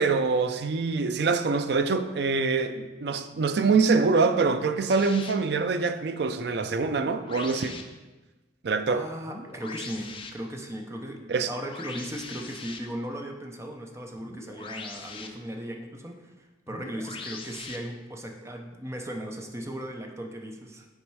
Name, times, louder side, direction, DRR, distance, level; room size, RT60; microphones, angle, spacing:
voice 1, 0.0-7.7 8.6-9.0 11.3-11.5, right 4 dB, 65° right, 9 dB, 0.4 m, -25 dB
sound 1, 4.9-5.3 6.7-7.8 9.2-10.3 11.7-12.8 14.2-15.3 16.7-17.8, left 4 dB, 30° left, 0.6 m, -41 dB
voice 2, 8.9-20.9, equal, 15° right, 3 dB, 0.7 m, -37 dB
7.1 x 4.4 x 4.7 m, 1.2 s
head